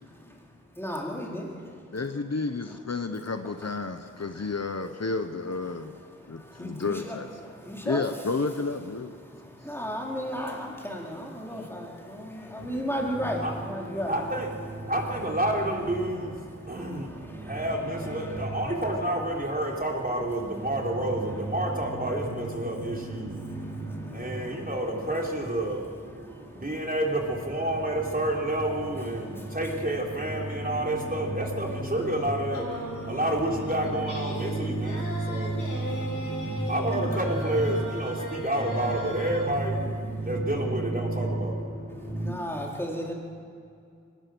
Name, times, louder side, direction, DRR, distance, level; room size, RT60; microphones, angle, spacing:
voice 1, 0.1-0.4 0.7-1.7 6.1-7.2 7.4-8.2 9.2-14.1 16.6-17.6 18.2-18.4 23.3-24.7 26.2-26.7 29.2-29.6 32.9-33.1 35.1-36.7 42.0-43.1, equal, 10° left, -2 dB, 4.2 m, -36 dB
voice 2, 1.9-6.0 6.3-7.3 7.8-9.1, left 3 dB, 55° left, 8 dB, 1.0 m, -31 dB
voice 3, 12.6-42.3, right 1 dB, 30° right, -1 dB, 3.5 m, -29 dB
sound 1, 32.5-39.5, equal, 75° left, 4.7 m, -38 dB
22.5 x 19.5 x 6.2 m, 2.4 s
wide cardioid pair, 60°, 31 cm